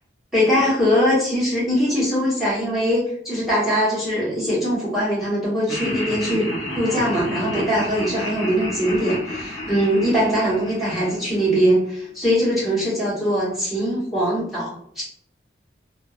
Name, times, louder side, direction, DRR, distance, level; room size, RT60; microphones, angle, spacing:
voice 1, 0.3-6.5 6.7-15.0, equal, ahead, -9 dB, 1.2 m, -21 dB
Laughter, 5.7-11.9, left 1 dB, 85° left, 0.7 m, -31 dB
2.6 x 2.1 x 2.4 m, 0.64 s
head